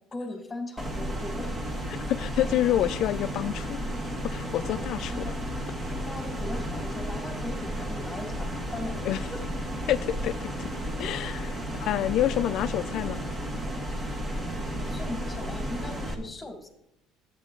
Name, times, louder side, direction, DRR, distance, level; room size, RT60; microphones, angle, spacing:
voice 1, 0.1-1.5 5.1-5.4 6.1-9.4 11.7-11.8 14.7-16.7, left 2 dB, 10° left, 1.8 m, -39 dB
sound 1, 0.8-16.1, equal, 25° right, 1.4 m, -33 dB
voice 2, 2.1-3.8 4.2-5.3 9.0-9.3 9.9-10.7 11.0-13.2, left 12 dB, 60° left, 0.3 m, -28 dB
11.5 x 8.1 x 3.8 m
cardioid pair, 115°, 0 cm